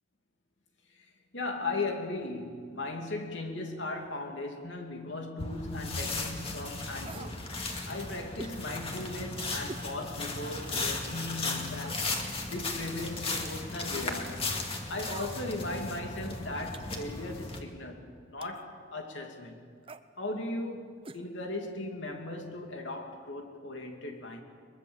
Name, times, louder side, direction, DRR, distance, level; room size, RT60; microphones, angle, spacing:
voice 1, 0.9-7.4 7.8-12.1 12.5-14.4 14.9-19.7 20.2-24.4, left 2 dB, 90° left, 2.7 m, -37 dB
sound 1, 5.4-17.6, left 3 dB, 30° left, 2.3 m, -36 dB
sound 2, 7.0-7.4 8.4-8.6 9.7-9.9 10.4-10.5 11.7-12.1 13.0-13.4 15.0-15.6 16.7-17.1 18.4-18.7 19.8-20.1 21.0-21.2 21.5-21.6, right 3 dB, 30° right, 0.7 m, -46 dB
22.5 x 22.0 x 7.2 m
head